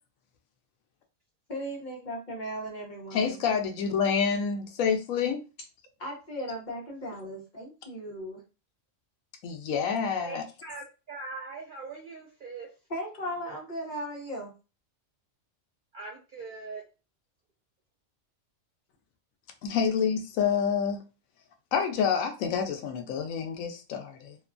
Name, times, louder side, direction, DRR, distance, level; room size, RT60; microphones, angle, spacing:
voice 1, 1.5-3.4 6.0-8.4 12.9-14.5, equal, 40° left, 0.9 m, -37 dB
voice 2, 3.1-5.4 9.4-10.4 19.6-21.0 21.7-24.4, left 6 dB, 85° left, 1.0 m, -28 dB
voice 3, 10.2-12.7 15.9-16.8, right 3 dB, 60° right, 0.5 m, -41 dB
2.8 x 2.2 x 2.4 m
omnidirectional pair, 1.4 m